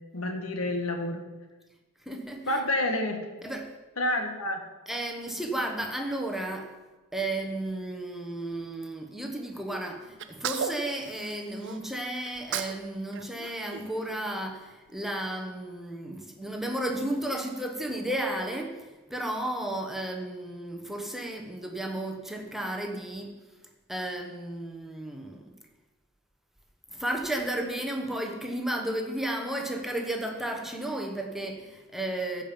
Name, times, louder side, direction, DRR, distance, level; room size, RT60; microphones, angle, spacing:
voice 1, 0.1-1.2 2.5-3.2 4.0-4.6, left 1 dB, 70° left, 4 dB, 1.6 m, -28 dB
voice 2, 2.0-2.6 3.4-3.7 4.9-6.7 7.1-23.3 23.9-25.5 26.9-32.4, right 1 dB, ahead, 2 dB, 1.0 m, -33 dB
Sneeze, 10.2-11.8 12.3-12.9 13.1-14.6, right 7 dB, 55° right, 0.6 m, -36 dB
15.0 x 5.3 x 7.1 m, 1.2 s
head